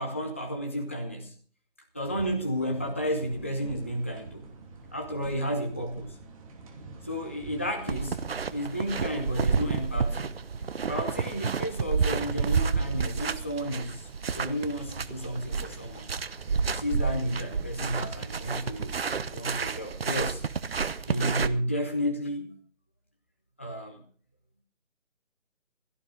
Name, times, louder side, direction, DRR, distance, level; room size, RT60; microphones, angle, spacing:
voice 1, 0.0-1.3 1.9-4.4 4.9-6.2 7.0-8.2 8.5-10.4 10.9-16.1 16.7-18.9 19.3-20.4 21.1-22.5 23.6-24.0, equal, 10° left, 2 dB, 0.6 m, -32 dB
sound 1, 2.0-19.2, right 4 dB, 25° right, 2.8 m, -47 dB
sound 2, 7.9-21.5, right 5 dB, 50° right, 1.0 m, -30 dB
16.5 x 13.5 x 4.9 m, 0.43 s
figure-of-eight pair, 155°, 38 cm